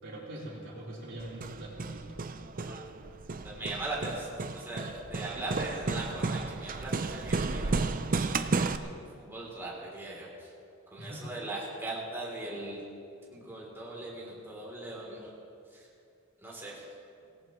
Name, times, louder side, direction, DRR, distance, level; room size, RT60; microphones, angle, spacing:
voice 1, 0.0-2.2 11.0-11.3, right 1 dB, 60° right, -5 dB, 4.0 m, -42 dB
Hammer, 1.2-8.8, right 3 dB, 40° right, 0.6 m, -33 dB
voice 2, 3.4-8.0 8.5-10.5 10.9-12.8 13.3-15.3 15.7-15.8 16.4-16.8, right 2 dB, 10° right, -5 dB, 3.3 m, -39 dB
25.0 x 18.0 x 3.2 m, 2.6 s
head